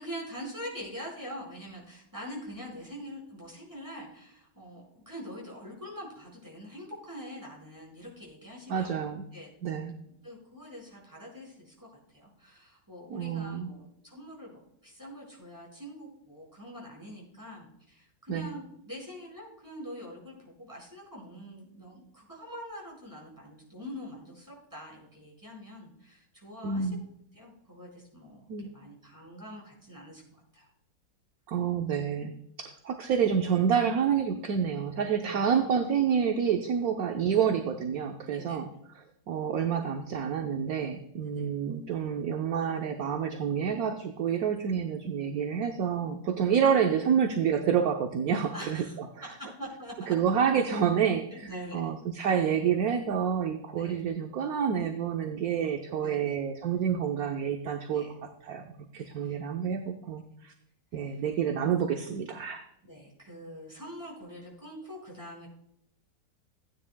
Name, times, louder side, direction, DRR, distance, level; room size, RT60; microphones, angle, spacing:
voice 1, 0.0-9.0 9.3-9.5 10.1-26.9 27.3-30.7 35.2-35.4 38.2-38.6 41.2-41.5 48.5-48.9 49.2-50.1 51.3-51.9 53.8-54.0 56.0-56.4 57.9-58.1 58.9-59.4 61.0-61.2 62.8-65.5, equal, 10° right, -4 dB, 4.7 m, -44 dB
voice 2, 8.7-9.2 9.6-9.9 13.1-13.7 18.3-18.5 26.6-27.0 28.5-28.7 31.5-32.3 32.6-48.8 50.1-58.1 58.4-58.7 58.9-60.5 60.9-62.6, right 7 dB, 60° right, 4 dB, 1.1 m, -28 dB
15.5 x 9.7 x 2.2 m, 0.76 s
omnidirectional pair, 1.9 m